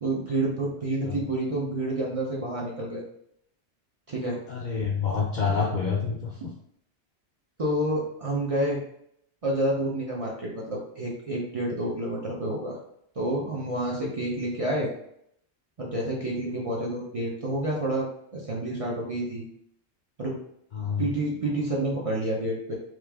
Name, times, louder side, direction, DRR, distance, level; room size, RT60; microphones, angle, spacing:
voice 1, 0.0-3.0 4.1-4.4 7.6-8.8 9.4-12.8 13.2-14.9 15.8-18.1 18.3-19.4 20.2-20.4 21.0-22.8, right 1 dB, 40° right, -3 dB, 0.6 m, -29 dB
voice 2, 4.5-6.3 20.7-21.0, left 5 dB, 60° left, -1 dB, 0.5 m, -27 dB
3.2 x 2.4 x 3.4 m, 0.73 s
omnidirectional pair, 1.1 m